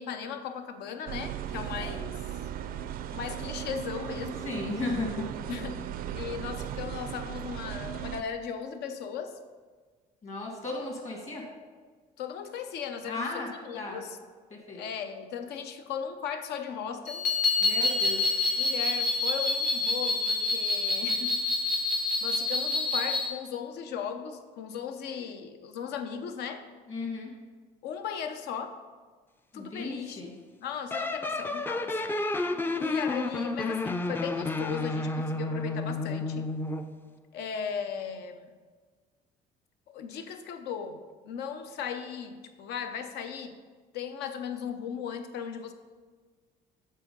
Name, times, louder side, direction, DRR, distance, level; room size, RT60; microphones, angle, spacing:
voice 1, 0.0-2.2 3.1-4.4 5.5-5.9 6.1-9.4 12.2-14.2 14.7-17.3 18.6-21.4 22.2-26.7 27.8-28.8 29.5-30.3 30.6-32.0 32.8-36.6 37.3-38.5 39.9-43.6 43.9-45.7, left 7 dB, 80° left, 8 dB, 0.6 m, -37 dB
sound 1, 1.1-8.2, right 10 dB, 60° right, 0.4 m, -37 dB
voice 2, 4.4-5.3 10.2-11.4 13.0-13.5 13.7-14.0 14.5-14.8 17.6-18.2 26.9-27.3 29.5-30.3, left 2 dB, 40° left, 0 dB, 1.7 m, -35 dB
sound 2, 17.1-23.3, left 3 dB, 60° left, 1.4 m, -27 dB
sound 3, 30.9-36.9, left 2 dB, 10° left, 0.3 m, -31 dB
7.5 x 3.7 x 5.3 m, 1.4 s
cardioid pair, 110°, 17 cm